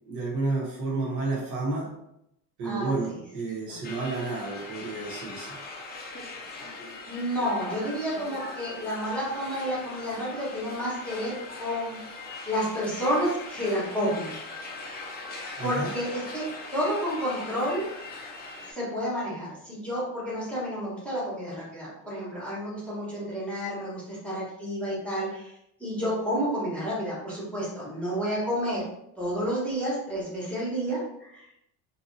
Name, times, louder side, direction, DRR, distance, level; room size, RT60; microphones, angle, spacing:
voice 1, 0.1-2.0 2.6-5.6 15.6-16.0, right 3 dB, 45° right, -3 dB, 0.8 m, -31 dB
voice 2, 2.6-3.1 3.7-3.8 6.7-6.8 7.1-12.0 12.4-14.4 15.6-17.9 18.7-25.5 25.8-28.8 29.2-31.4, equal, 5° left, -8 dB, 1.1 m, -30 dB
sound 1, 3.8-18.7, left 3 dB, 25° left, 0.4 m, -40 dB
2.7 x 2.6 x 2.6 m, 0.79 s
cardioid pair, 125°, 40 cm